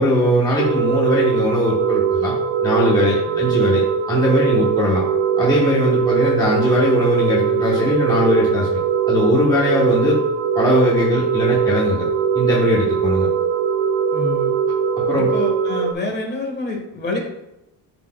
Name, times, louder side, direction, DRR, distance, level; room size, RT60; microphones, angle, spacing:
voice 1, 0.0-2.3 2.6-3.8 4.1-5.0 5.4-8.8 9.1-10.2 10.5-12.1 12.3-13.3 15.1-15.3, left 1 dB, 10° left, -5 dB, 1.0 m, -19 dB
sound 1, 0.6-15.9, right 7 dB, 55° right, 0.5 m, -20 dB
voice 2, 14.1-14.6 15.2-17.2, left 2 dB, 25° left, 1 dB, 1.2 m, -27 dB
11.0 x 4.2 x 2.2 m, 0.89 s
cardioid pair, 170°, 39 cm